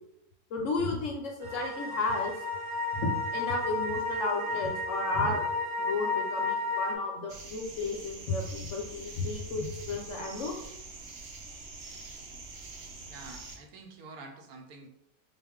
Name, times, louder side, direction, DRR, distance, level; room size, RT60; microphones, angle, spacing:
voice 1, 0.5-2.3 2.9-10.5, left 3 dB, 65° left, 1 dB, 0.8 m, -33 dB
sound 1, 1.4-7.0, left 3 dB, 40° right, 1.0 m, -32 dB
sound 2, 7.3-13.6, right 3 dB, 60° right, 0.7 m, -45 dB
voice 2, 13.1-14.9, right 3 dB, 75° right, 4 dB, 1.0 m, -47 dB
4.0 x 2.5 x 3.5 m, 0.85 s
omnidirectional pair, 1.6 m